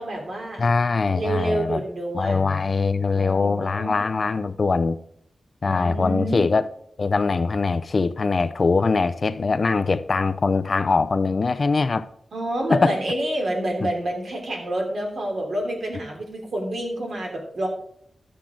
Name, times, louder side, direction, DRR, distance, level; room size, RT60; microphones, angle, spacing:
voice 1, 0.0-0.6 1.1-2.6 3.1-4.0 5.6-6.5 12.3-17.7, right 1 dB, 65° right, 3.2 m, -28 dB
voice 2, 0.6-1.8 2.1-5.0 5.6-6.7 7.0-12.1 12.7-12.9, left 4 dB, 45° left, 0.5 m, -22 dB
12.0 x 7.4 x 3.9 m
wide cardioid pair, 145°, 0 cm